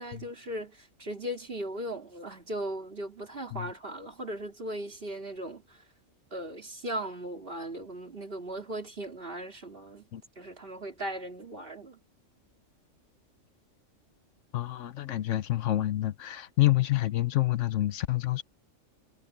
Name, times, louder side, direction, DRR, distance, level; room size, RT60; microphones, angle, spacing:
voice 1, 0.0-5.8 6.3-10.1 10.4-12.0, right 1 dB, 45° right, 3.2 m, -38 dB
voice 2, 14.5-18.4, left 15 dB, 70° left, 1.0 m, -28 dB
omnidirectional pair, 1.3 m